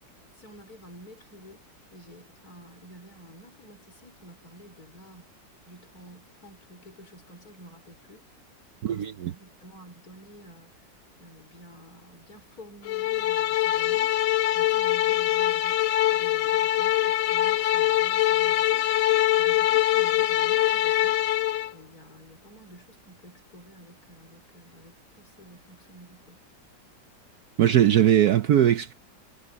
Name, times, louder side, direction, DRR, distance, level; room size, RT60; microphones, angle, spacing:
voice 1, 0.4-1.6 1.9-5.4 5.7-8.3 8.9-10.7 11.2-14.3 14.5-18.9 19.4-21.2 21.7-26.4, equal, 50° left, 5.4 m, -50 dB
voice 2, 8.8-9.3 27.6-28.9, right 11 dB, 65° right, 1.0 m, -20 dB
sound 1, 12.9-21.7, left 14 dB, 70° left, 0.7 m, -23 dB
omnidirectional pair, 2.0 m